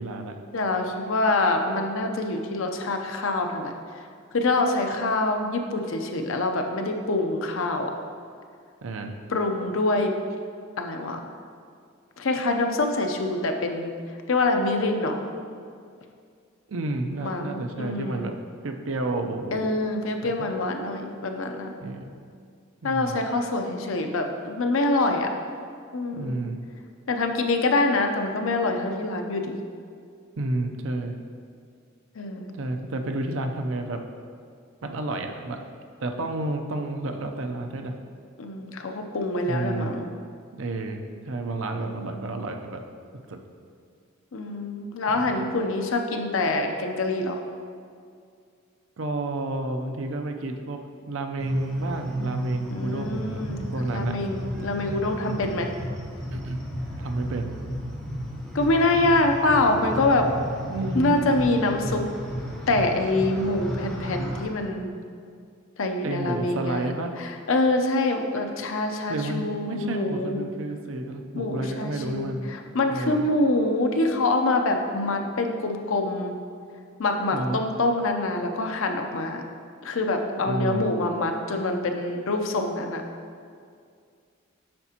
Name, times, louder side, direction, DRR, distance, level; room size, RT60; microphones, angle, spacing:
voice 1, 0.0-0.4 8.8-9.2 16.7-19.8 20.2-20.5 21.8-22.1 22.8-23.2 26.1-26.6 30.4-31.2 32.5-34.1 34.8-35.6 36.0-38.0 39.4-40.0 40.5-42.9 43.1-43.4 45.2-45.4 49.0-54.2 56.3-56.6 57.0-57.6 60.7-61.2 66.0-67.2 69.1-72.5 72.9-73.3 77.3-77.6 80.4-80.9, right 2 dB, 70° right, 5 dB, 0.6 m, -31 dB
voice 2, 0.5-3.7 4.3-7.9 9.3-10.1 10.8-11.3 12.2-13.9 14.3-15.2 17.2-18.3 19.5-21.7 22.8-25.3 25.9-26.3 27.1-29.6 32.2-32.5 38.4-40.1 41.8-42.2 44.3-47.4 52.7-55.7 58.5-60.3 60.9-62.0 62.7-64.9 65.8-66.9 67.2-70.5 71.4-76.4 77.0-79.4 79.8-83.0, left 2 dB, 70° left, 4 dB, 0.6 m, -25 dB
sound 1, 51.4-64.5, equal, 5° left, 1.2 m, -33 dB
8.6 x 5.9 x 2.9 m, 2.3 s
head